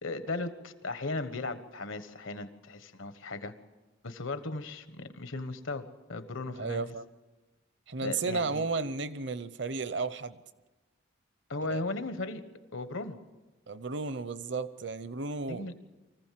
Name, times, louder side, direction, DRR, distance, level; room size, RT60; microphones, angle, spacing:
voice 1, 0.0-3.5 4.0-5.8 6.1-6.9 8.0-8.6 11.5-12.4 12.7-13.2 15.5-15.7, left 2 dB, 75° left, 10 dB, 1.3 m, -36 dB
voice 2, 6.6-7.0 7.9-10.4 11.7-11.8 13.7-15.7, right 4 dB, 60° right, 14 dB, 0.8 m, -33 dB
24.0 x 15.5 x 7.6 m, 1.2 s
head